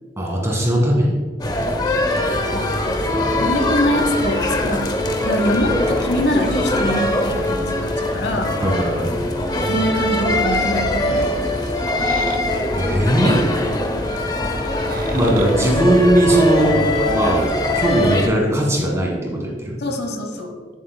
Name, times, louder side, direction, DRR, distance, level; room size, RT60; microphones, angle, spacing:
voice 1, 0.2-1.2 3.0-3.5 8.6-9.2 12.7-13.4 15.1-17.5 17.7-19.8, right 1 dB, 15° right, -1 dB, 1.5 m, -19 dB
sound 1, 1.4-18.3, left 1 dB, 20° left, 0.6 m, -22 dB
voice 2, 3.4-8.6 9.7-11.4 19.8-20.6, left 1 dB, 70° left, 4 dB, 0.9 m, -24 dB
sound 2, 11.8-12.4 13.2-13.4 14.6-15.5 16.3-16.5, right 3 dB, 50° right, 0.6 m, -31 dB
9.9 x 7.6 x 2.2 m, 1.5 s
head